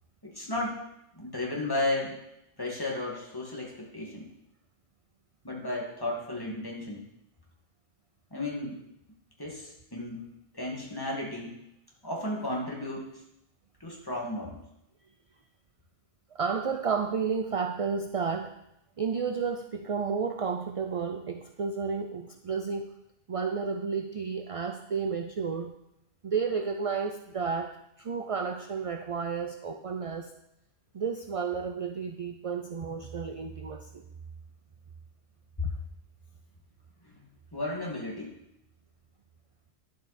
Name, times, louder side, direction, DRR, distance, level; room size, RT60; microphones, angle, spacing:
voice 1, 0.2-0.8 1.1-2.2 2.6-4.3 5.4-7.0 8.3-8.8 9.4-10.3 10.5-11.6 12.0-13.1 13.8-14.6 35.6-35.7 37.5-38.3, left 1 dB, 20° left, -3 dB, 2.2 m, -33 dB
voice 2, 16.3-18.5 19.0-22.9 23.3-25.7 26.2-30.3 30.9-34.0, right 5 dB, 45° right, 5 dB, 0.5 m, -32 dB
11.0 x 7.5 x 4.3 m, 0.83 s
omnidirectional pair, 1.1 m